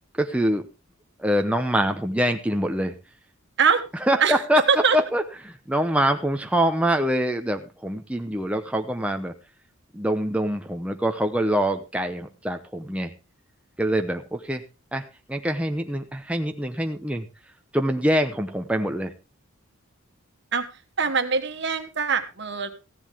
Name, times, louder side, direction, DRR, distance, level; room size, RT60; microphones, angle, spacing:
voice 1, 0.1-0.6 1.2-2.9 4.0-4.6 4.9-9.3 9.9-13.1 13.8-14.6 14.9-15.0 15.3-17.3 17.7-19.1, equal, 5° right, 4 dB, 0.8 m, -24 dB
voice 2, 21.0-22.7, right 6 dB, 60° right, 7 dB, 1.5 m, -22 dB
15.5 x 10.5 x 3.5 m, 0.28 s
head